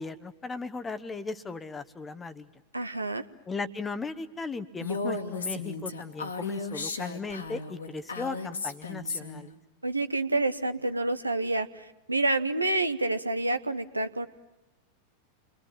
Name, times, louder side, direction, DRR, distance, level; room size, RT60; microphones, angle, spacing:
voice 1, 0.0-2.5 3.5-9.5, left 4 dB, 15° left, 12 dB, 1.0 m, -37 dB
voice 2, 2.7-3.3 9.8-14.3, right 2 dB, 85° right, 9 dB, 0.9 m, -28 dB
Female speech woman speaking, 4.8-9.5, left 4 dB, 75° left, 2.0 m, -34 dB
29.5 x 23.0 x 7.4 m, 0.99 s
figure-of-eight pair, 90°, 0 cm